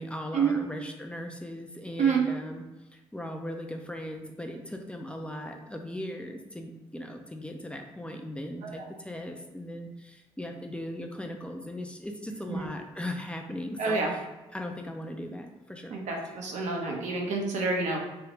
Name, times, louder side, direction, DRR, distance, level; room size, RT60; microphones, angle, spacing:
voice 1, 0.0-2.6 2.9-14.2 14.5-16.0, left 1 dB, 10° left, 3 dB, 0.5 m, -38 dB
voice 2, 13.8-14.1 15.9-18.0, right 4 dB, 75° right, 1 dB, 0.7 m, -28 dB
3.4 x 2.4 x 2.9 m, 1.1 s
supercardioid pair, 65°, 12 cm